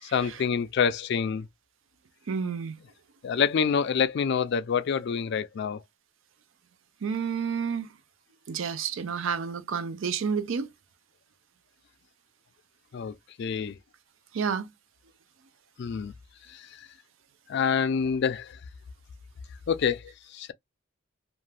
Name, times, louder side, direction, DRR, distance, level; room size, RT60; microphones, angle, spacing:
voice 1, 0.1-1.5 3.2-5.8 12.9-13.7 15.8-16.1 16.5-16.6 17.5-18.6 19.7-20.5, left 6 dB, 55° left, 0.3 m, -27 dB
voice 2, 2.3-2.8 7.0-7.9 8.5-10.7 14.3-14.7, right 6 dB, 70° right, 0.4 m, -30 dB
2.5 x 2.1 x 3.2 m
head